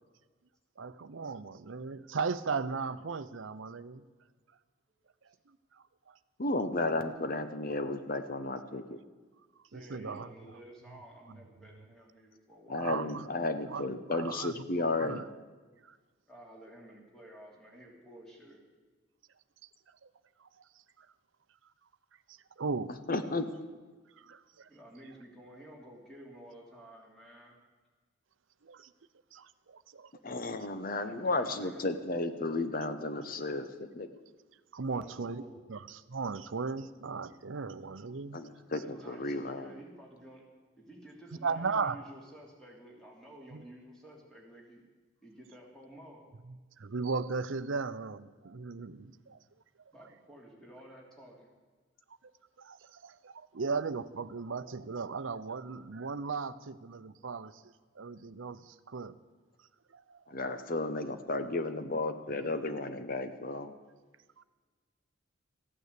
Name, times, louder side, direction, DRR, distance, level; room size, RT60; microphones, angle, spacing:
voice 1, 0.8-4.0 6.1-6.2 9.7-10.3 12.8-13.3 13.7-13.9 14.1-14.5 15.0-15.2 15.9-16.0 20.4-20.5 22.3-22.9 24.2-24.7 28.6-28.9 29.3-30.1 34.7-35.4 35.7-38.4 41.4-42.0 43.5-43.6 46.8-49.4 52.6-57.5 58.0-59.1 59.9-60.2 64.4-64.5, right 4 dB, 75° right, 14 dB, 0.7 m, -37 dB
voice 2, 6.4-9.0 12.7-15.2 23.1-23.5 30.2-34.1 38.3-39.7 60.3-63.7, left 2 dB, 45° left, 10 dB, 0.9 m, -33 dB
voice 3, 9.7-13.0 16.3-18.6 24.7-27.6 31.0-31.8 34.9-35.6 38.8-40.4 40.8-44.8 45.2-46.2 49.9-51.5, right 1 dB, 5° left, -2 dB, 3.0 m, -52 dB
14.5 x 9.5 x 8.3 m, 1.4 s
head